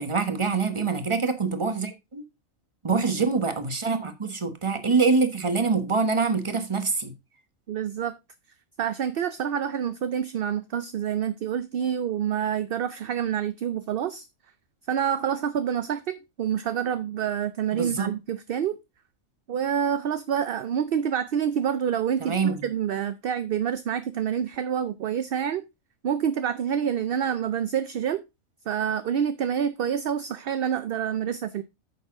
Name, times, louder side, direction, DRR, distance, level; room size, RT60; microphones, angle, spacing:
voice 1, 0.0-2.2 2.8-7.1 17.7-18.1 22.2-22.6, right 4 dB, 25° right, 1.2 m, -25 dB
voice 2, 7.7-8.1 8.8-14.3 14.9-18.8 19.5-25.6 26.0-28.2 28.7-31.6, right 8 dB, 60° right, 0.6 m, -27 dB
9.4 x 6.6 x 3.7 m
omnidirectional pair, 1.4 m